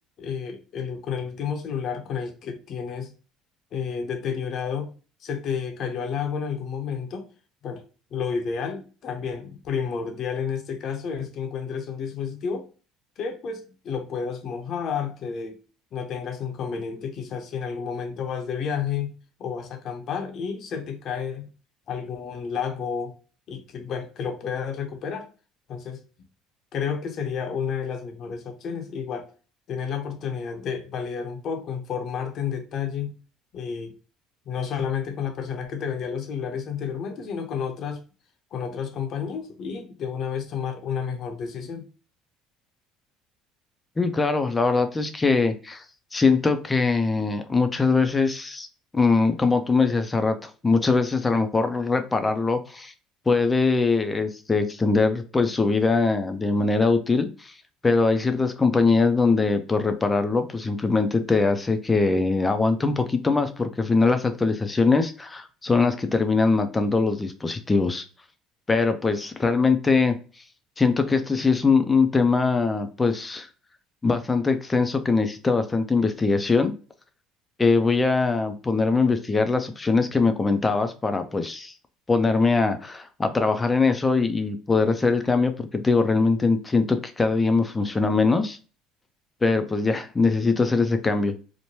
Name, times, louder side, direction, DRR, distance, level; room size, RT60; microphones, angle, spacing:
voice 1, 0.2-3.1 3.7-4.9 5.2-7.3 7.6-7.8 8.1-12.7 13.2-15.6 15.9-19.1 19.4-21.5 21.9-23.1 23.5-25.3 25.7-26.0 26.7-29.3 29.7-33.2 33.5-33.9 34.5-38.0 38.5-41.9, left 6 dB, 55° left, 5 dB, 0.7 m, -31 dB
voice 2, 44.0-45.8 46.1-48.7 48.9-52.9 53.3-57.5 57.8-68.0 68.7-70.2 70.8-73.5 74.0-76.7 77.6-81.7 82.1-88.6 89.4-91.3, left 4 dB, 20° left, 8 dB, 0.4 m, -22 dB
3.0 x 2.1 x 2.7 m, 0.36 s
supercardioid pair, 80°, 0 cm